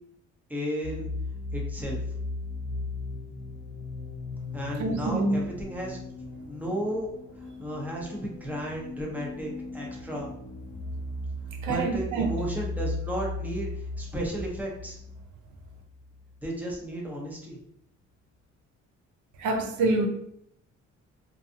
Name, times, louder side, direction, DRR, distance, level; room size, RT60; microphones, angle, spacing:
voice 1, 0.5-1.1 1.5-2.0 4.5-6.0 6.4-7.1 7.6-10.3 11.6-13.7 14.0-15.0 16.4-17.6, equal, 5° right, 0.7 m, -33 dB
sound 1, 0.8-16.4, left 2 dB, 35° left, 0.9 m, -37 dB
voice 2, 4.8-5.4 11.6-12.3 19.4-20.1, right 2 dB, 75° right, 0.5 m, -26 dB
2.6 x 2.4 x 2.6 m
cardioid pair, 90°, 30 cm